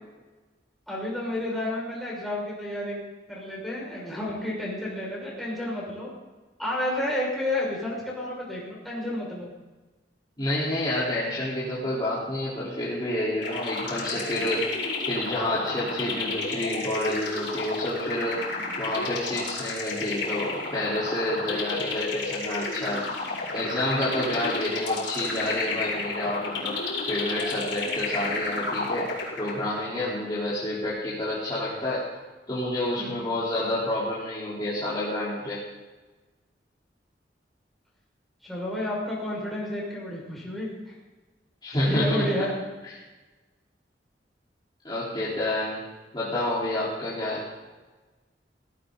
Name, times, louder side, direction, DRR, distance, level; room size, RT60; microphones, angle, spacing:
voice 1, 0.9-3.0 3.3-6.1 6.6-9.5 33.0-33.2 38.4-40.9 41.8-42.5, left 1 dB, ahead, -6 dB, 6.2 m, -31 dB
voice 2, 10.4-14.7 15.1-18.4 18.8-23.0 23.5-26.8 27.1-29.1 29.4-32.0 32.5-35.6 41.6-42.3 44.8-45.8 46.1-47.4, left 1 dB, 25° left, -10 dB, 4.2 m, -29 dB
sound 1, 13.4-29.8, left 3 dB, 75° left, 4.9 m, -32 dB
17.5 x 17.0 x 4.1 m, 1.2 s
head